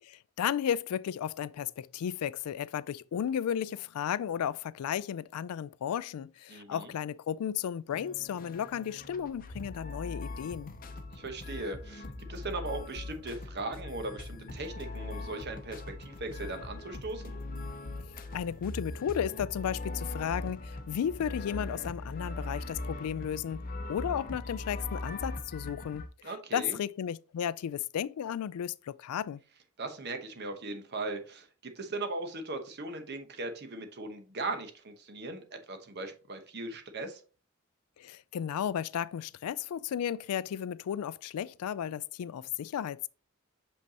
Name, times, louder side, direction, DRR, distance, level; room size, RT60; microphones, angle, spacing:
voice 1, 0.0-10.7 18.0-23.6 23.9-29.4 38.0-43.1, left 9 dB, 85° left, 0.3 m, -34 dB
voice 2, 6.5-6.9 11.1-17.4 26.2-26.8 29.8-37.2, right 2 dB, 50° right, 1.0 m, -38 dB
sound 1, 7.9-26.1, left 2 dB, 40° left, 0.7 m, -40 dB
6.5 x 5.2 x 2.8 m
head